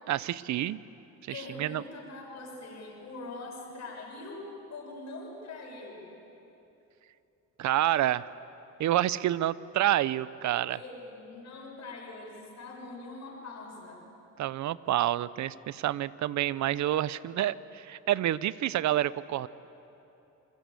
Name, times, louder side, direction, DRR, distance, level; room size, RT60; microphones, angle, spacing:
voice 1, 0.1-0.8 1.2-1.8 7.6-8.3 8.8-10.8 14.4-19.5, right 13 dB, 70° right, 18 dB, 0.7 m, -28 dB
voice 2, 1.3-6.1 10.7-14.0, left 2 dB, 60° left, 0 dB, 6.7 m, -43 dB
28.5 x 20.0 x 8.3 m, 3.0 s
cardioid pair, 90°, 30 cm